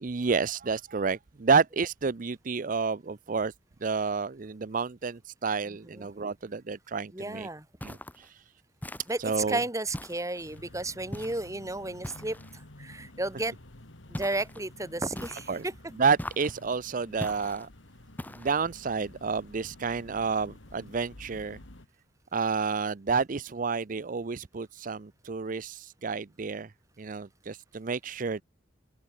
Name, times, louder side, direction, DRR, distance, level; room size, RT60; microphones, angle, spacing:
voice 1, 0.0-3.5 3.8-7.5 7.8-8.4 9.2-9.6 15.5-15.7 16.0-17.7 18.4-21.6 22.3-26.7 27.0-28.4, right 5 dB, 45° right, 0.6 m, -30 dB
voice 2, 5.7-6.1 7.1-7.7 9.1-9.2 9.5-12.4 12.8-13.5 14.1-15.7, right 2 dB, 15° right, 2.7 m, -33 dB
sound 1, 7.8-8.3 8.8-9.4 9.9-10.6 11.1-11.5 12.0-12.6 14.1-14.6 15.1-15.7 16.2-16.7 17.2-17.7 18.2-18.7, left 1 dB, 10° left, 1.4 m, -41 dB
sound 2, 10.4-21.9, left 1 dB, 85° left, 2.3 m, -51 dB
open air
head